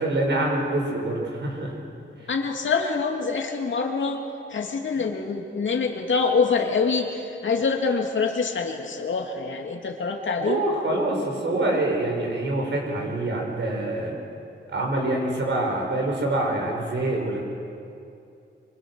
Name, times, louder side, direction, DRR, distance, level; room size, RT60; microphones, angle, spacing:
voice 1, 0.0-1.7 5.0-5.1 10.4-14.2 14.7-17.4, right 2 dB, 65° right, 0 dB, 6.2 m, -25 dB
voice 2, 2.3-4.2 4.5-10.6, left 5 dB, 75° left, 2 dB, 2.6 m, -25 dB
26.0 x 25.5 x 6.5 m, 2.6 s
wide cardioid pair, 125°, 20 cm